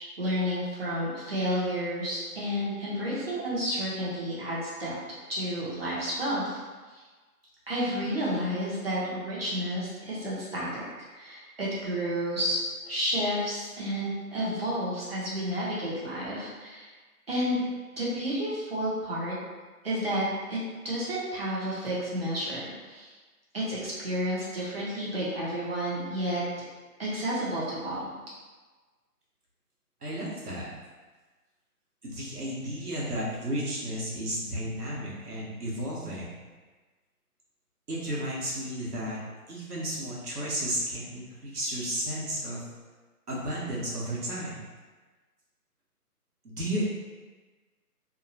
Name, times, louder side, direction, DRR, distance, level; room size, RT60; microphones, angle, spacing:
voice 1, 0.0-4.9 5.3-6.6 6.9-7.0 7.7-10.8 11.1-12.6 12.9-16.9 17.3-17.6 18.0-19.3 19.8-20.6 20.8-23.1 23.5-26.4 27.0-28.1, equal, 40° right, -7 dB, 0.8 m, -31 dB
voice 2, 30.0-30.7 32.0-36.3 37.9-39.2 39.5-42.6 43.3-44.6 46.4-46.8, equal, 75° right, -5 dB, 1.0 m, -33 dB
2.8 x 2.3 x 2.7 m, 1.3 s
figure-of-eight pair, 145°, 46 cm